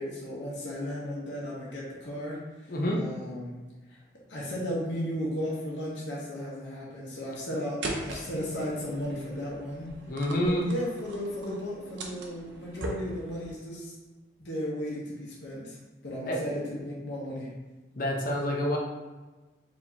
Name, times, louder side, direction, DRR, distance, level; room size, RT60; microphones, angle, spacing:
voice 1, 0.0-4.0 4.3-10.0 10.4-13.9 14.4-15.8 16.0-17.6, equal, 80° left, -5 dB, 0.9 m, -35 dB
voice 2, 2.7-3.0 10.1-10.6 16.2-16.4 18.0-18.8, left 1 dB, 50° left, 0 dB, 0.7 m, -27 dB
sound 1, 7.8-13.5, right 1 dB, 80° right, 0.6 m, -40 dB
4.6 x 2.8 x 2.7 m, 1.2 s
head